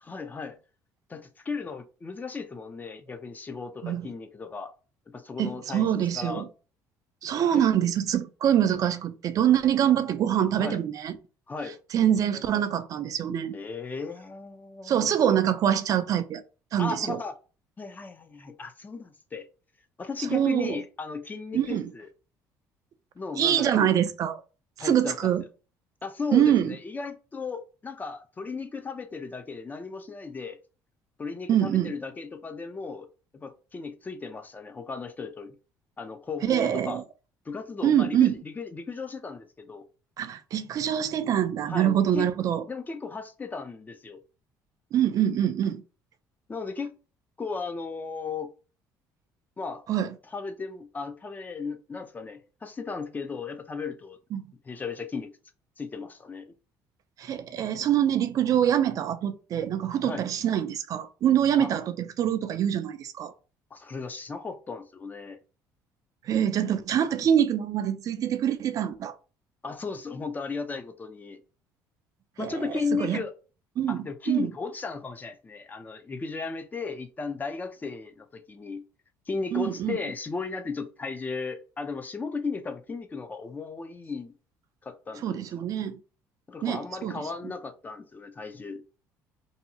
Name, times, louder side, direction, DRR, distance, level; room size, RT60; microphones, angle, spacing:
voice 1, 0.0-0.6 1.1-4.7 5.1-5.9 6.1-6.4 7.5-7.6 10.6-10.8 11.5-11.8 13.5-15.1 16.8-17.3 17.8-19.5 20.0-22.1 23.2-23.9 24.8-25.3 26.0-30.6 31.2-33.1 33.3-35.6 36.0-37.0 37.5-39.9 41.7-42.3 42.7-44.2 46.5-46.9 47.4-48.5 49.6-49.8 50.3-54.2 54.7-55.3 55.8-56.5 60.0-60.2 61.6-61.7 63.7-65.4 69.6-71.4 72.4-73.3 73.9-78.8 79.3-84.3 84.8-85.4 86.5-88.8, left 4 dB, 25° left, 0.4 m, -35 dB
voice 2, 5.4-6.5 7.2-11.2 11.9-13.5 14.8-16.4 16.7-17.2 20.3-20.8 21.5-21.9 23.4-24.4 24.8-25.4 26.3-26.8 31.5-31.9 36.4-37.0 37.8-38.3 40.2-42.6 44.9-45.8 49.9-50.1 54.3-54.4 57.2-63.3 66.2-69.2 72.4-73.2 73.8-74.5 79.5-80.0 85.2-86.0 86.6-87.2, right 10 dB, 50° right, 0.3 m, -25 dB
2.6 x 2.3 x 2.7 m
cardioid pair, 95°, 7 cm